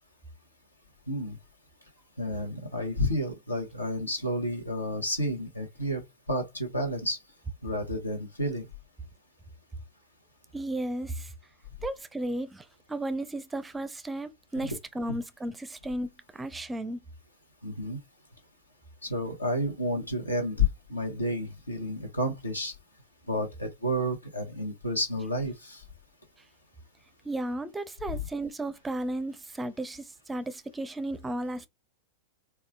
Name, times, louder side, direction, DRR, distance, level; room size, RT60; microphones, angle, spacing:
voice 1, 1.1-1.4 2.2-6.0 6.3-7.2 7.6-8.7 17.6-18.0 19.0-22.7 23.3-25.8, left 1 dB, 80° left, 1.0 m, -30 dB
voice 2, 10.5-11.3 11.8-17.0 27.2-31.7, right 1 dB, 10° right, 0.5 m, -34 dB
4.3 x 2.3 x 2.2 m
figure-of-eight pair, 90°, 0 cm